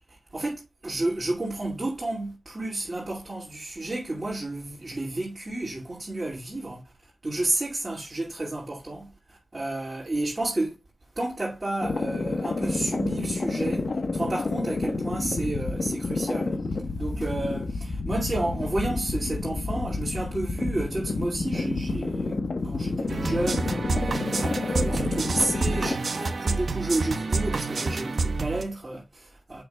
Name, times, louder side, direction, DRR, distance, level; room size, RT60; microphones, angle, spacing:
voice 1, 0.3-6.8 7.2-10.8 11.2-16.6 16.9-22.4 22.6-29.6, right 2 dB, 35° right, 2.4 m, -31 dB
sound 1, 11.8-25.9, left 3 dB, 60° left, 1.2 m, -29 dB
sound 2, 23.1-28.6, right 3 dB, 65° right, 0.9 m, -28 dB
6.8 x 6.0 x 2.3 m
cardioid pair, 45°, 0 cm